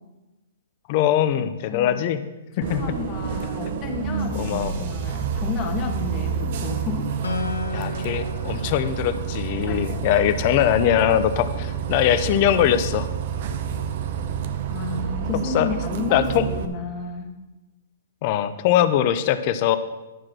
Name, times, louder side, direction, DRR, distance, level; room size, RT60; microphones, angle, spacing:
voice 1, 0.9-2.2 2.6-2.8 4.3-4.8 7.7-13.1 15.4-15.7 16.1-16.5 18.2-19.8, left 10 dB, 45° left, 12 dB, 0.6 m, -21 dB
voice 2, 1.7-2.0 2.7-7.4 9.7-9.8 14.7-17.3, left 5 dB, 30° left, 2 dB, 1.6 m, -31 dB
Bus, 2.6-16.6, right 7 dB, 50° right, 0.8 m, -29 dB
Acoustic guitar, 7.2-10.7, left 3 dB, 85° left, 1.3 m, -34 dB
11.0 x 4.8 x 6.1 m, 1.1 s
hypercardioid pair, 135°, 0 cm